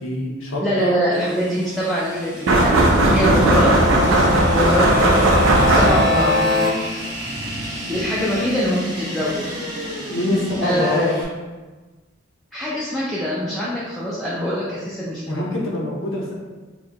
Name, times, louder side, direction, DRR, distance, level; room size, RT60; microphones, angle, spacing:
voice 1, 0.0-1.0 3.1-3.4 3.9-4.4 10.1-11.3 14.7-14.8 15.3-16.3, left 1 dB, 90° left, -3 dB, 0.7 m, -25 dB
voice 2, 0.6-2.8 3.1-3.8 4.1-4.2 4.5-4.9 5.6-6.4 7.9-9.4 10.6-11.1 12.5-15.5, equal, ahead, -8 dB, 0.4 m, -23 dB
sound 1, 1.1-11.2, equal, 20° right, 0.9 m, -32 dB
sound 2, 2.5-6.3, right 1 dB, 90° right, 0.6 m, -16 dB
sound 3, 3.4-6.7, left 2 dB, 50° right, 0.6 m, -22 dB
4.6 x 2.2 x 2.8 m, 1.3 s
head